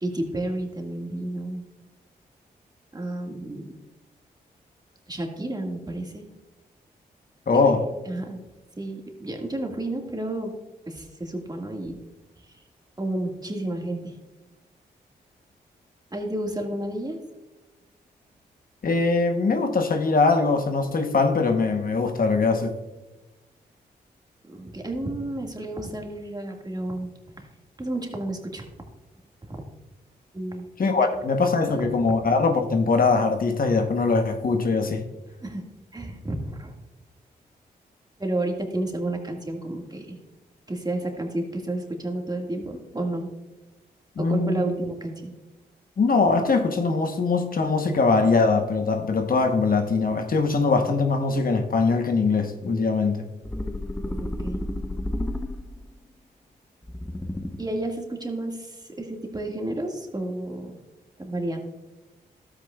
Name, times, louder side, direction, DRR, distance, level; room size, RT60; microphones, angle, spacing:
voice 1, 0.0-1.6 2.9-3.7 5.1-6.3 7.5-7.7 8.1-8.4 8.8-10.5 10.9-12.0 13.0-14.2 16.1-17.2 24.5-27.1 27.4-27.5 27.8-28.7 29.4-29.6 30.3-30.6 31.7-31.8 35.4-35.6 35.9-36.7 38.2-40.2 40.7-43.3 44.3-45.3 54.0-54.6 57.6-60.8 61.2-61.7, right 1 dB, 20° right, 2 dB, 1.9 m, -31 dB
voice 2, 7.5-7.8 18.8-22.7 30.8-35.0 44.2-44.7 46.0-53.2, left 4 dB, 55° left, 5 dB, 1.0 m, -22 dB
sound 1, 53.4-55.9 56.8-57.8, left 1 dB, 10° left, 0.7 m, -31 dB
12.5 x 8.4 x 2.4 m, 1.0 s
supercardioid pair, 45°, 18 cm